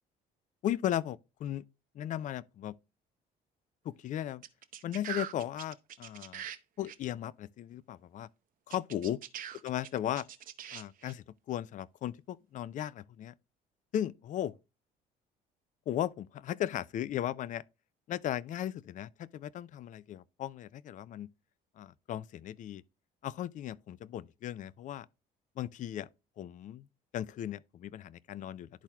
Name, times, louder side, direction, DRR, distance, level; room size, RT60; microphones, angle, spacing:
voice 1, 0.6-1.6 1.9-2.8 3.8-4.4 4.8-6.4 6.8-8.3 8.7-9.2 9.6-10.3 10.7-13.3 13.9-14.5 15.9-17.6 18.1-21.3 21.8-22.8 23.2-25.1 25.6-26.1 26.4-26.9 27.1-28.7, left 11 dB, 50° left, 0.4 m, -36 dB
sound 1, 4.4-6.6 6.8-7.0 8.7-11.1, right 10 dB, 55° right, 0.7 m, -42 dB
12.5 x 4.3 x 2.3 m
cardioid pair, 110°, 17 cm